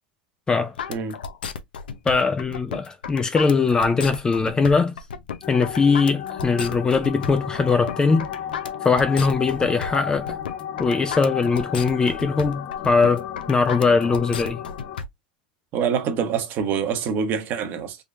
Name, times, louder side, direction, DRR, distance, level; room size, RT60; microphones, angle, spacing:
sound 1, 0.8-15.1, left 6 dB, 85° left, 0.6 m, -33 dB
voice 1, 2.1-5.0 5.5-8.3 8.8-10.4 10.8-14.6, left 4 dB, 15° left, 0.4 m, -21 dB
sound 2, 5.4-15.0, left 9 dB, 45° left, 0.7 m, -34 dB
voice 2, 15.7-18.0, right 7 dB, 40° right, 1.1 m, -25 dB
3.6 x 3.1 x 2.4 m
hypercardioid pair, 115°, 5 cm